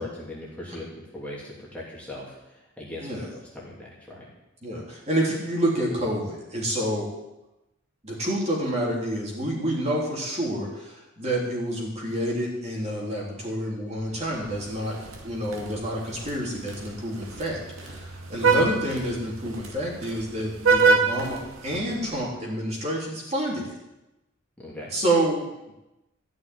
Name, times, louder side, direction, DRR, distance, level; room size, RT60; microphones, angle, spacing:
voice 1, 0.0-4.3 18.3-18.5 24.6-24.9, left 1 dB, 5° left, -6 dB, 2.9 m, -39 dB
voice 2, 4.6-7.1 8.0-14.9 15.2-23.8 24.9-25.5, right 1 dB, 30° right, -4 dB, 3.5 m, -28 dB
Vehicle horn car horn honking, 14.1-22.3, right 4 dB, 70° right, 0.9 m, -27 dB
sound 1, 14.6-21.8, right 2 dB, 85° right, 2.2 m, -46 dB
14.0 x 6.4 x 9.4 m, 0.96 s
head